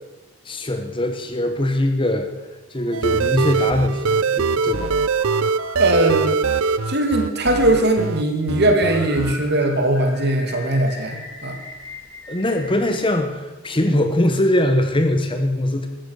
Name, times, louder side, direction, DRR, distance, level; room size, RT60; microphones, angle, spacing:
voice 1, 0.4-2.3 2.7-4.9 12.3-15.9, left 1 dB, 20° left, 7 dB, 1.1 m, -21 dB
sound 1, 2.8-3.5 4.5-8.5 8.9-13.1, equal, 60° left, 4.4 m, -39 dB
sound 2, 2.9-8.2 8.5-9.3, right 5 dB, 65° right, 0.5 m, -22 dB
voice 2, 5.8-6.3 6.9-11.6, right 1 dB, 50° right, 4 dB, 2.5 m, -20 dB
14.0 x 14.0 x 6.5 m, 1.1 s
head